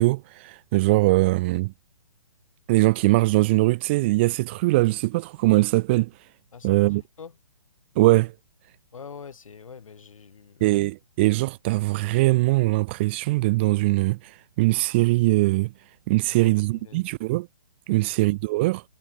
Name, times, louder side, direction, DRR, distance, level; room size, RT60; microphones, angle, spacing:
voice 1, 0.0-1.7 2.7-6.1 6.6-7.0 8.0-8.3 10.6-15.7 16.1-17.5 17.9-18.8, right 21 dB, 20° right, 1.0 m, -21 dB
voice 2, 6.5-7.4 8.9-10.8 16.2-17.0 17.9-18.1, left 6 dB, 65° left, 7.9 m, -45 dB
hypercardioid pair, 170°, 18 cm